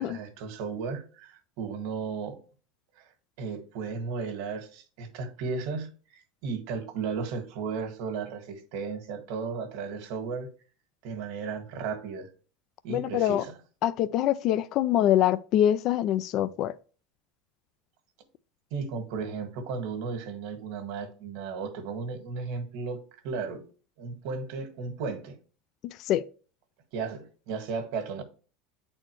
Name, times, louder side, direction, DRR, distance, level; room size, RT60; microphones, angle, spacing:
voice 1, 0.0-2.4 3.0-3.1 3.4-10.5 11.0-12.3 12.8-13.6 18.7-23.6 24.0-25.4 26.9-28.2, right 5 dB, 70° right, 1.6 m, -35 dB
voice 2, 12.9-13.4 13.8-16.7 26.0-26.2, left 11 dB, 50° left, 0.4 m, -24 dB
8.7 x 4.2 x 3.1 m
supercardioid pair, 120°, 0 cm